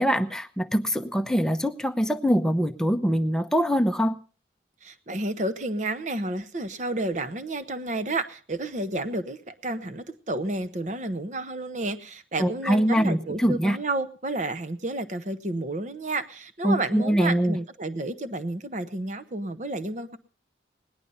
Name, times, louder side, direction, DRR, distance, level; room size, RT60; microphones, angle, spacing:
voice 1, 0.0-4.2 12.4-13.8 16.6-17.6, equal, 5° left, 7 dB, 0.7 m, -23 dB
voice 2, 4.8-20.2, right 2 dB, 40° right, 10 dB, 0.9 m, -31 dB
18.5 x 11.0 x 5.4 m, 0.42 s
head